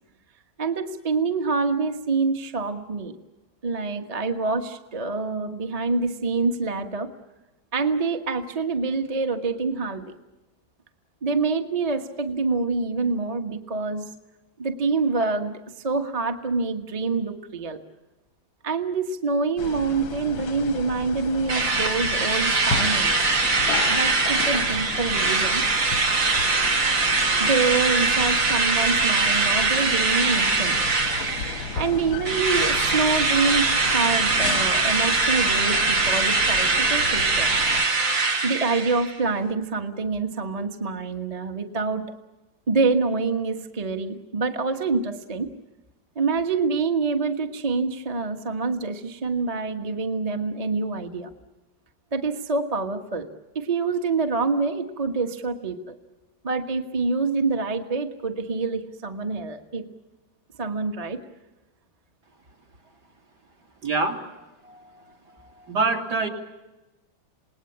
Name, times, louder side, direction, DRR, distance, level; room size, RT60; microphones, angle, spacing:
voice 1, 0.6-3.1 3.6-7.1 7.7-10.1 11.2-14.1 14.6-15.6 15.8-17.8 18.6-23.2 23.9-25.6 27.4-30.8 31.7-37.5 38.4-42.2 42.7-45.5 46.1-51.3 52.1-53.3 53.5-56.0 56.4-59.8 60.6-61.2 64.6-65.0 65.4-65.7, right 4 dB, 20° right, 5 dB, 1.2 m, -26 dB
sound 1, 19.6-37.8, left 5 dB, 90° left, 2.3 m, -34 dB
Drill, 21.5-31.9 32.3-39.2, right 3 dB, 70° right, 2.6 m, -22 dB
voice 2, 63.8-64.2 65.7-66.3, right 3 dB, 55° right, 2 dB, 3.3 m, -24 dB
28.5 x 19.5 x 8.6 m, 1.1 s
omnidirectional pair, 2.1 m